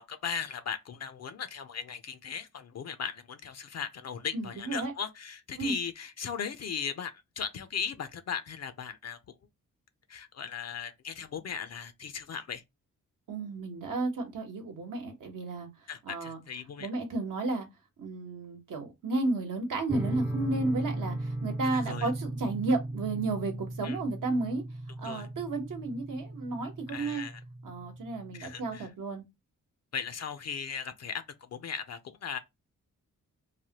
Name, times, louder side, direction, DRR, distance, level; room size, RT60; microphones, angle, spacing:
voice 1, 0.0-9.2 10.1-12.6 15.9-16.9 21.6-22.1 23.8-24.0 25.0-25.3 26.9-27.4 28.3-28.9 29.9-32.4, left 7 dB, 50° left, 0.5 m, -38 dB
voice 2, 4.3-4.9 5.6-5.8 13.3-15.7 16.1-16.4 16.8-17.7 18.0-21.2 21.4-24.6 25.0-27.3 27.6-29.2, right 3 dB, 75° right, 1.0 m, -32 dB
sound 1, 19.9-28.9, right 1 dB, 5° right, 0.4 m, -37 dB
3.2 x 2.1 x 2.8 m
cardioid pair, 85°, 33 cm